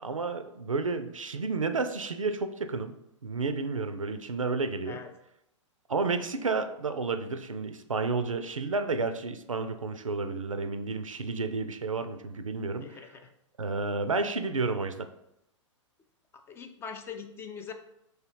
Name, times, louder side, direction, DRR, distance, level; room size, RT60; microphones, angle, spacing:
voice 1, 0.0-2.9 3.2-5.0 5.9-12.9 13.6-15.1, right 3 dB, 85° right, 8 dB, 0.5 m, -31 dB
voice 2, 12.8-13.3 16.3-17.7, left 6 dB, 15° left, 6 dB, 0.3 m, -42 dB
3.6 x 3.3 x 4.5 m, 0.83 s
figure-of-eight pair, 110°, 16 cm